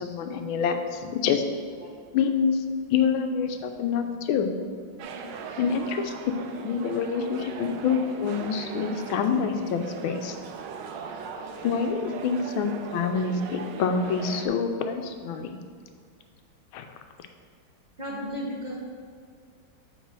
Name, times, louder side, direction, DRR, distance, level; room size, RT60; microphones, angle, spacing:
voice 1, 0.0-1.4 2.1-2.6 2.9-4.5 5.6-6.1 6.6-10.4 11.6-15.5 16.7-16.9, left 6 dB, 90° left, 6 dB, 1.4 m, -26 dB
sound 1, 5.0-14.5, right 6 dB, 70° right, 1.1 m, -39 dB
voice 2, 18.0-18.8, equal, 50° right, -4 dB, 0.5 m, -35 dB
7.2 x 3.9 x 6.1 m, 2.1 s
omnidirectional pair, 2.2 m